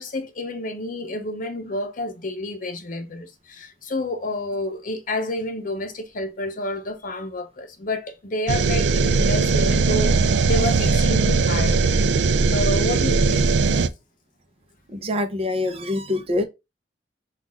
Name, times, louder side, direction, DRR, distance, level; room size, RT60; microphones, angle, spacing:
voice 1, 0.0-11.8 12.5-13.8, left 1 dB, 50° left, 0.7 m, -29 dB
sound 1, 8.5-13.9, right 4 dB, 70° right, 0.4 m, -19 dB
voice 2, 14.9-16.4, left 2 dB, 35° right, 0.7 m, -25 dB
5.8 x 2.4 x 3.5 m
head